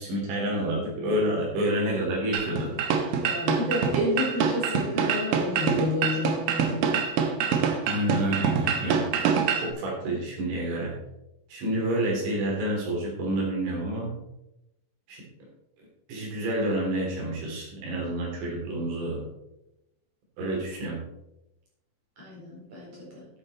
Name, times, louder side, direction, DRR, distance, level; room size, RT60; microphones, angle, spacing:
voice 1, 0.0-2.7 7.8-9.0 9.6-10.9 11.5-14.1 15.1-15.2 16.1-19.2 20.4-21.0, right 1 dB, 90° right, -2 dB, 5.8 m, -28 dB
sound 1, 2.3-9.7, right 6 dB, 70° right, 2.2 m, -25 dB
voice 2, 3.2-7.0 22.2-23.3, left 1 dB, 45° right, -4 dB, 5.4 m, -30 dB
11.5 x 8.3 x 4.3 m, 0.87 s
omnidirectional pair, 5.2 m